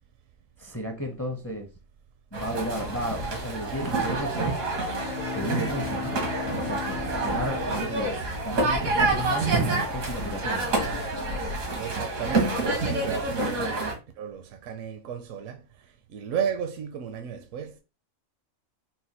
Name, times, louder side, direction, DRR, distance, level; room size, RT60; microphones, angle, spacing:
voice 1, 0.6-1.7 2.3-4.6 5.3-6.2 6.6-8.1 8.4-10.9, equal, 20° left, 0.4 m, -33 dB
sound 1, 2.3-13.9, right 2 dB, 90° right, 1.7 m, -28 dB
Bowed string instrument, 4.6-9.4, left 5 dB, 75° left, 0.4 m, -37 dB
voice 2, 11.8-15.6 16.1-17.8, right 8 dB, 75° right, 0.9 m, -34 dB
4.2 x 2.2 x 4.0 m
omnidirectional pair, 1.4 m